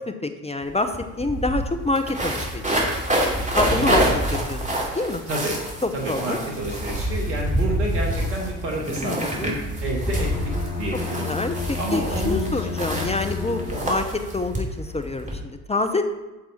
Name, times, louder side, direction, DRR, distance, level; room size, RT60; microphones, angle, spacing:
voice 1, 0.0-2.8 3.6-4.2 4.5-5.2 5.8-6.4 9.0-9.6 11.3-14.0 14.3-16.0, left 2 dB, 15° left, 7 dB, 0.8 m, -27 dB
sound 1, 0.6-0.7 0.9-15.4, right 1 dB, 15° right, 2.7 m, -27 dB
voice 2, 3.8-4.2 5.3-5.6 5.9-10.3 10.8-11.3 11.8-13.1 13.7-13.9, right 1 dB, 80° right, 0 dB, 1.9 m, -30 dB
Bowed string instrument, 10.0-14.1, left 6 dB, 85° left, 1.2 m, -32 dB
9.0 x 7.0 x 4.3 m, 1.1 s
hypercardioid pair, 55°, 47 cm